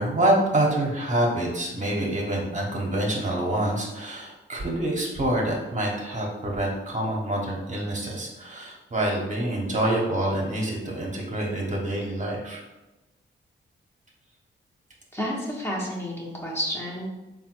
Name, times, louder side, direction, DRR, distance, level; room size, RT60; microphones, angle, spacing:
voice 1, 0.0-12.6, right 1 dB, 35° right, -2 dB, 1.0 m, -26 dB
voice 2, 15.1-17.1, equal, 10° left, -3 dB, 1.0 m, -30 dB
3.5 x 2.3 x 4.4 m, 1.0 s
cardioid pair, 55°, 21 cm